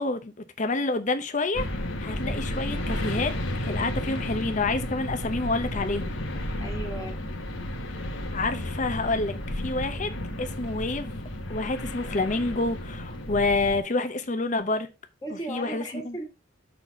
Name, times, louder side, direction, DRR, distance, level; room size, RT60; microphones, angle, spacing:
voice 1, 0.0-1.7 2.0-3.3 3.6-6.2 8.3-11.2 11.5-14.9 15.5-16.2, left 3 dB, 40° left, 0.8 m, -28 dB
sound 1, 1.5-13.8, left 1 dB, 80° left, 1.4 m, -32 dB
voice 2, 6.6-7.2 15.2-16.2, right 1 dB, 20° left, 1.9 m, -36 dB
6.7 x 4.1 x 5.6 m
head